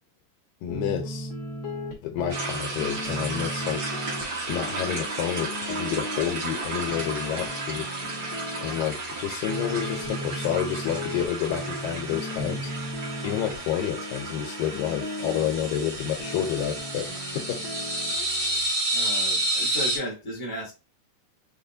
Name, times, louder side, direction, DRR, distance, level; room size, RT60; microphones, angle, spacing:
voice 1, 0.6-1.3 2.0-3.8 4.5-7.9 8.6-12.7 13.2-17.1 17.4-17.6, left 10 dB, 85° left, 2.3 m, -29 dB
sound 1, 0.7-18.7, left 1 dB, 55° left, 1.5 m, -36 dB
sound 2, 2.3-20.0, right 2 dB, 85° right, 0.8 m, -32 dB
voice 2, 18.9-20.7, equal, 20° left, 0.7 m, -34 dB
5.6 x 2.4 x 2.6 m
omnidirectional pair, 4.0 m